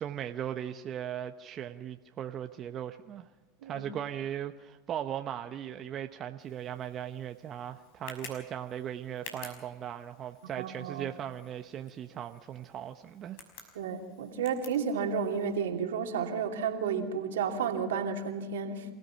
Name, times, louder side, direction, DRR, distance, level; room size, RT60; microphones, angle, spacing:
voice 1, 0.0-3.3 3.6-13.4, right 10 dB, 40° right, 6 dB, 0.9 m, -38 dB
Tick, 6.4-15.6, left 5 dB, 70° left, 5.7 m, -52 dB
voice 2, 10.6-11.1 13.7-18.9, right 6 dB, 80° right, 3 dB, 2.7 m, -32 dB
27.5 x 16.5 x 5.8 m, 1.2 s
hypercardioid pair, 95°, 0 cm